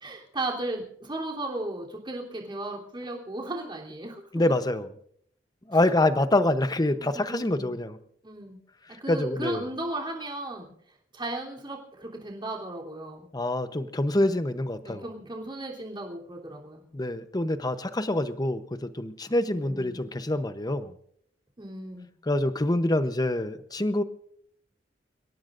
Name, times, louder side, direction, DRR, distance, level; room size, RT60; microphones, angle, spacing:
voice 1, 0.0-4.2 7.0-7.7 8.2-8.6 8.9-10.7 11.1-13.3 14.8-16.8 19.5-20.0 21.6-22.1, right 2 dB, 25° right, -2 dB, 3.3 m, -36 dB
voice 2, 4.3-4.9 5.7-8.0 9.1-9.6 13.3-15.0 16.9-20.9 22.2-24.0, left 1 dB, 20° left, 11 dB, 0.8 m, -26 dB
30.0 x 17.0 x 2.6 m, 0.67 s
head